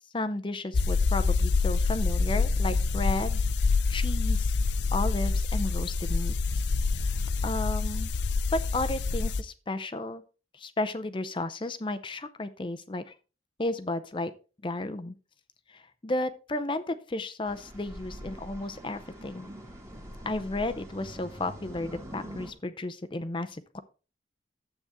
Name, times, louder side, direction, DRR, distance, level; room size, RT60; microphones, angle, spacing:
voice 1, 0.0-3.4 3.9-4.5 4.9-6.6 6.9-7.2 7.4-8.1 8.5-10.2 10.5-13.1 13.6-14.3 14.6-15.1 15.7-19.5 20.2-23.8, left 2 dB, 25° left, 10 dB, 0.6 m, -33 dB
sound 1, 0.7-9.4, left 4 dB, 70° left, 0.5 m, -26 dB
sound 2, 17.4-22.5, equal, 15° right, 1.7 m, -44 dB
10.0 x 7.8 x 3.5 m, 0.34 s
head